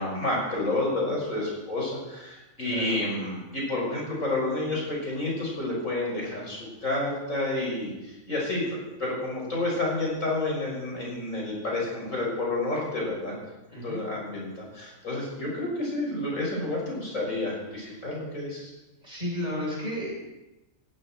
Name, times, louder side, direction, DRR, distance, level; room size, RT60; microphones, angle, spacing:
voice 1, 0.0-8.6 9.0-13.3 13.8-18.7, left 2 dB, 70° left, -3 dB, 6.4 m, -30 dB
voice 2, 2.6-3.0 13.7-14.0 17.8-17.9 19.0-20.1, left 1 dB, 30° right, -5 dB, 8.3 m, -33 dB
18.0 x 17.5 x 4.4 m, 1.0 s
omnidirectional pair, 1.4 m